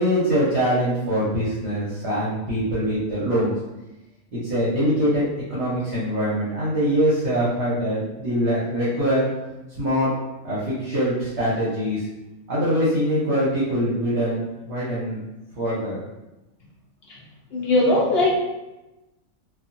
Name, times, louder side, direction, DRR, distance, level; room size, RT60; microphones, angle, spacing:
voice 1, 0.0-3.5 4.3-9.3 9.8-10.1 10.4-12.0 12.5-15.2 15.6-16.0, equal, 55° right, -9 dB, 0.9 m, -23 dB
voice 2, 17.5-18.3, left 2 dB, 60° left, -4 dB, 0.6 m, -19 dB
2.7 x 2.4 x 2.5 m, 1.0 s
omnidirectional pair, 1.5 m